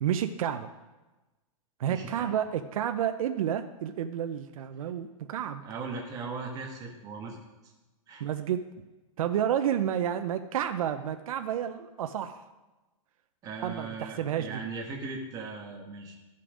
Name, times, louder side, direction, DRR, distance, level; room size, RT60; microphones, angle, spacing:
voice 1, 0.0-0.7 1.8-5.6 8.2-8.8 9.2-12.4 13.6-14.6, right 9 dB, 75° right, 8 dB, 0.7 m, -30 dB
voice 2, 1.9-2.3 5.6-7.4 8.1-8.2 13.4-16.2, right 4 dB, 20° right, 1 dB, 1.4 m, -38 dB
12.5 x 5.7 x 5.0 m, 1.1 s
supercardioid pair, 160°, 18 cm